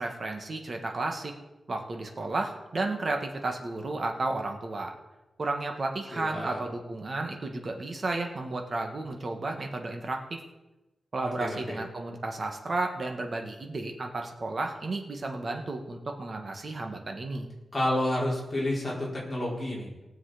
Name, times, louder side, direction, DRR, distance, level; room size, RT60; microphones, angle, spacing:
voice 1, 0.0-1.3 1.7-4.9 5.4-10.4 11.1-17.5, right 2 dB, 45° right, 3 dB, 1.8 m, -33 dB
voice 2, 6.1-6.6 11.2-11.8 17.7-19.9, left 1 dB, 20° left, -5 dB, 4.6 m, -30 dB
19.5 x 7.2 x 5.1 m, 1.0 s
wide cardioid pair, 135°, 0 cm